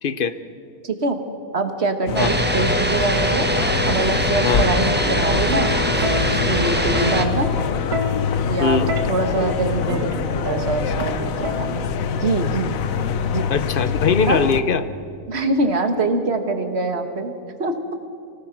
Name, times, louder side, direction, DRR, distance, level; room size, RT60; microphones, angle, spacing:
voice 1, 0.0-0.3 2.2-2.3 4.4-4.7 8.6-8.9 13.5-14.8, left 5 dB, 45° left, 13 dB, 0.8 m, -20 dB
voice 2, 0.8-1.2 1.5-3.5 3.8-5.7 6.2-7.5 8.5-8.8 9.1-11.9 12.2-12.8 13.3-13.4 14.2-14.4 15.3-17.3 17.6-17.7, right 3 dB, 45° right, 6 dB, 1.7 m, -24 dB
sound 1, 2.1-14.6, left 6 dB, 65° left, 1.2 m, -24 dB
sound 2, 2.2-7.3, right 1 dB, 5° right, 1.1 m, -22 dB
Plucked string instrument, 5.1-12.1 13.2-13.5, equal, 85° right, 1.6 m, -30 dB
25.5 x 18.0 x 6.0 m, 2.3 s
omnidirectional pair, 1.6 m